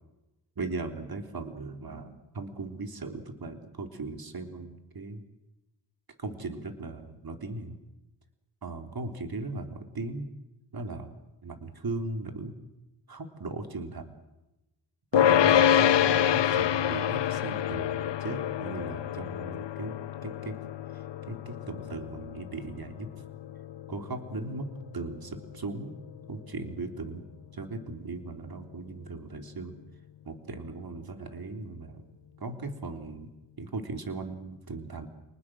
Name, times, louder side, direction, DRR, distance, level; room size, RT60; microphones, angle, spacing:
voice 1, 0.6-5.2 6.2-7.8 8.6-10.3 10.7-11.2 11.4-12.6 13.1-14.2 15.1-20.5 20.9-23.1 23.9-26.0 26.3-27.2 27.5-29.7 30.2-32.0 32.4-33.3 33.6-35.1, right 3 dB, 55° right, 6 dB, 3.4 m, -38 dB
sound 1, 15.1-26.5, left 10 dB, 70° left, 0.8 m, -27 dB
29.5 x 19.5 x 7.6 m, 0.97 s
cardioid pair, 60°, 44 cm